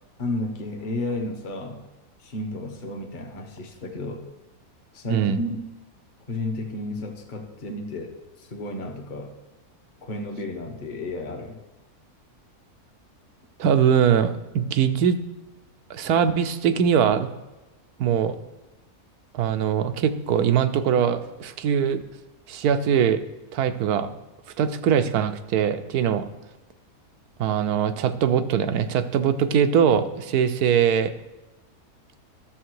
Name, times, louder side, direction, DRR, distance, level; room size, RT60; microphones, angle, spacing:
voice 1, 0.2-1.8 2.2-4.2 4.9-5.6 6.3-9.3 10.0-11.6, left 2 dB, 35° left, 2 dB, 1.3 m, -32 dB
voice 2, 13.6-15.2 15.9-17.3 18.0-18.4 19.3-22.0 22.5-23.2 23.5-24.1 24.6-26.3 27.4-31.1, right 8 dB, 80° right, 10 dB, 1.2 m, -22 dB
12.5 x 7.1 x 4.7 m, 1.1 s
omnidirectional pair, 1.6 m